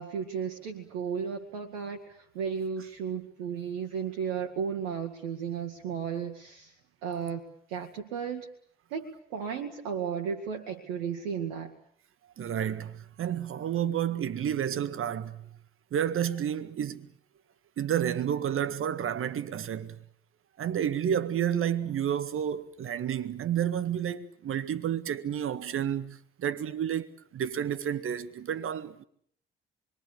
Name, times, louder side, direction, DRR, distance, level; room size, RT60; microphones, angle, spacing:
voice 1, 0.0-6.7 7.0-7.4 7.7-8.5 8.9-11.7, right 7 dB, 70° right, 2.1 m, -34 dB
voice 2, 12.4-15.5 15.9-17.1 17.8-20.0 20.6-27.1 27.3-29.0, right 9 dB, 45° right, 1.8 m, -30 dB
27.5 x 22.5 x 8.4 m
figure-of-eight pair, 45°, 29 cm